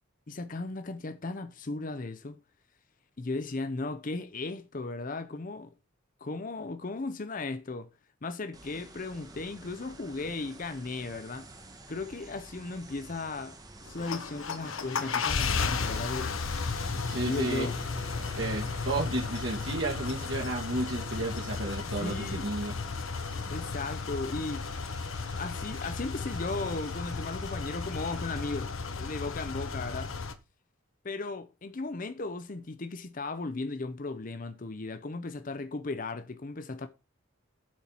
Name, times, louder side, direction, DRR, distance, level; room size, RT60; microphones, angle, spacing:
voice 1, 0.3-2.4 3.2-5.7 6.2-7.9 8.2-11.5 11.9-16.4 17.3-17.8 22.0-22.5 23.5-24.7 25.4-30.1 31.0-36.9, left 3 dB, 40° left, 0.6 m, -36 dB
sound 1, 8.5-28.5, right 2 dB, 20° right, 0.9 m, -50 dB
sound 2, 13.9-30.3, left 4 dB, 75° left, 0.9 m, -34 dB
voice 2, 17.1-17.7 18.3-22.8, right 2 dB, 60° right, 1.8 m, -32 dB
7.3 x 4.5 x 5.4 m
head